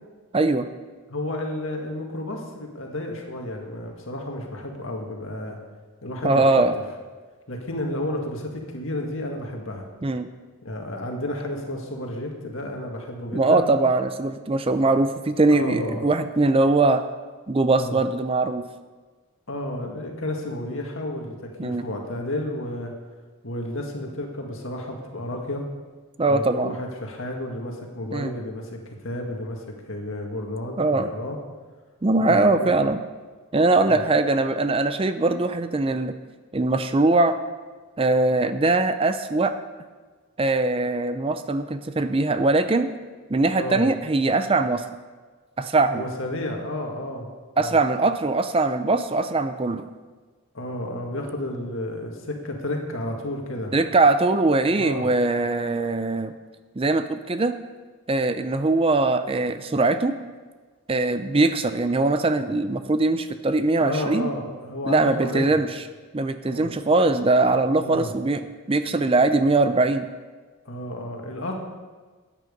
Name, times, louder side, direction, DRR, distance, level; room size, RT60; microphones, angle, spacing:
voice 1, 0.3-0.7 6.2-6.7 10.0-10.3 13.3-17.0 17.5-18.6 21.6-21.8 26.2-26.7 28.1-28.3 30.8-31.1 32.0-33.0 33.5-36.1 36.5-37.4 38.0-39.5 40.4-42.9 43.3-44.8 45.6-46.0 47.6-49.8 53.7-56.3 56.8-57.6 58.1-60.1 60.9-64.3 64.8-65.7 66.1-68.4 68.7-70.1, right 2 dB, 25° right, 10 dB, 0.5 m, -21 dB
voice 2, 1.1-5.6 6.0-6.4 7.5-9.9 10.6-13.7 15.5-16.1 17.7-18.0 19.5-22.9 23.4-25.6 26.3-31.4 32.2-32.7 33.9-34.0 43.5-43.9 45.9-47.3 47.5-47.8 50.5-53.7 54.7-55.1 63.8-65.6 66.4-66.7 67.8-68.1 70.7-71.6, left 1 dB, 65° left, 1 dB, 2.0 m, -31 dB
13.5 x 9.3 x 5.3 m, 1.4 s
head